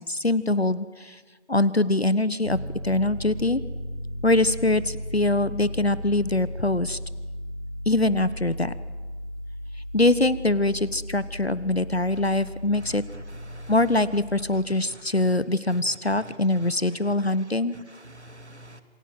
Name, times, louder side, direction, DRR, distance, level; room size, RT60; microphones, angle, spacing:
voice 1, 0.1-1.2 1.5-2.6 2.8-3.6 4.2-7.0 7.9-8.7 9.9-13.0 13.7-17.8, left 2 dB, 60° left, 17 dB, 1.1 m, -23 dB
Piano, 2.4-14.7, equal, 45° right, 5.7 m, -36 dB
voice 2, 12.8-13.7 16.2-16.3 17.9-18.8, right 1 dB, 70° right, 10 dB, 2.4 m, -46 dB
27.5 x 21.0 x 9.2 m, 1.3 s
figure-of-eight pair, 175°, 35 cm